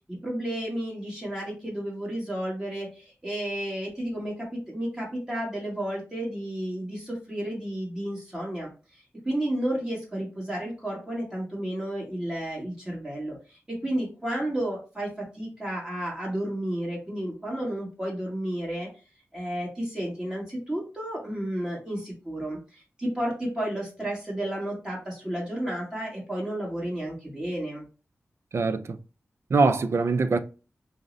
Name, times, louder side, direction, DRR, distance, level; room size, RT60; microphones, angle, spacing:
voice 1, 0.1-8.7 9.2-13.4 13.7-18.9 19.3-27.8, right 1 dB, 15° right, 1.4 m, -32 dB
voice 2, 28.5-29.0 29.5-30.4, right 4 dB, 60° right, 0.4 m, -23 dB
4.9 x 2.1 x 2.5 m
wide cardioid pair, 100°, 5 cm